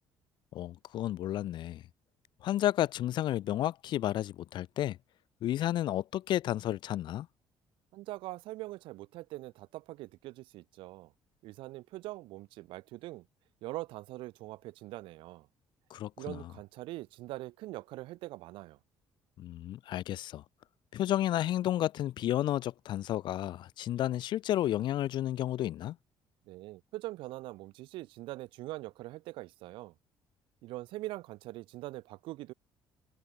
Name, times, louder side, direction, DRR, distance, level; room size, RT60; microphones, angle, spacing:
voice 1, 0.5-1.8 2.4-5.0 5.4-7.3 15.9-16.5 19.4-20.4 20.9-26.0, left 13 dB, 65° left, 1.8 m, -32 dB
voice 2, 7.9-11.1 11.4-13.2 13.6-15.5 16.2-18.8 26.5-29.9 30.6-32.5, right 18 dB, 85° right, 2.8 m, -43 dB
cardioid pair, 120°, 8 cm